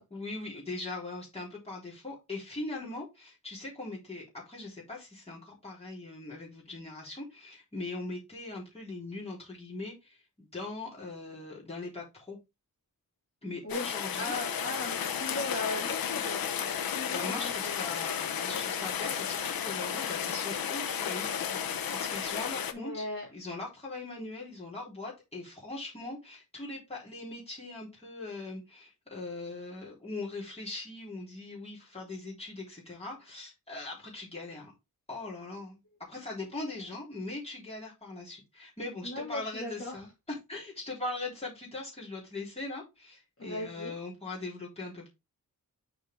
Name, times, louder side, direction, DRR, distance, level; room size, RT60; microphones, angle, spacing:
voice 1, 0.1-12.4 13.4-14.3 17.0-23.1 23.3-34.7 35.1-35.8 36.1-40.1 40.5-45.1, left 2 dB, 15° left, 3.7 m, -40 dB
Rain, 13.7-22.7, left 8 dB, 75° left, 0.8 m, -33 dB
voice 2, 14.2-17.8 22.7-23.3 39.0-39.9 43.4-44.0, left 2 dB, 40° left, 2.7 m, -38 dB
6.5 x 4.7 x 3.7 m
wide cardioid pair, 120°, 35 cm